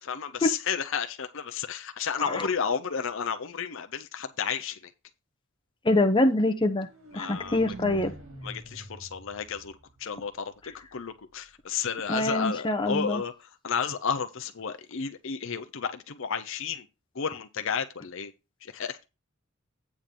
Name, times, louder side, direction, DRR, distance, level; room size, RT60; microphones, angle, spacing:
voice 1, 0.0-4.9 7.1-7.6 8.4-16.9 17.1-18.3 18.6-19.0, left 6 dB, 65° left, 0.7 m, -32 dB
voice 2, 5.8-6.9 7.1-8.1 12.1-13.2, left 2 dB, 20° left, 0.9 m, -24 dB
sound 1, 6.6-10.6, right 2 dB, 85° right, 3.5 m, -45 dB
8.7 x 3.9 x 6.7 m
head